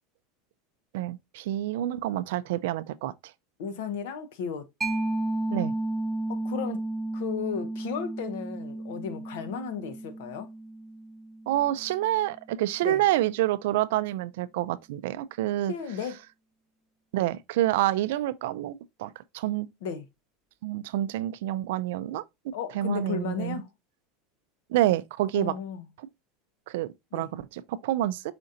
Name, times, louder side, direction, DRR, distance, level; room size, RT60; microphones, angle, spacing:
voice 1, 0.9-3.1 5.5-5.7 11.5-15.7 17.1-19.7 20.6-22.2 22.7-23.6 24.7-25.5 26.7-28.2, right 14 dB, 75° right, 0.3 m, -28 dB
voice 2, 3.6-4.6 6.3-10.5 12.8-13.0 15.7-16.2 19.8-20.1 22.5-23.7 25.3-25.8 27.1-27.3, left 7 dB, 75° left, 0.8 m, -34 dB
Mallet percussion, 4.8-12.1, right 2 dB, 5° right, 0.5 m, -33 dB
5.0 x 3.8 x 2.6 m
supercardioid pair, 160°, 0 cm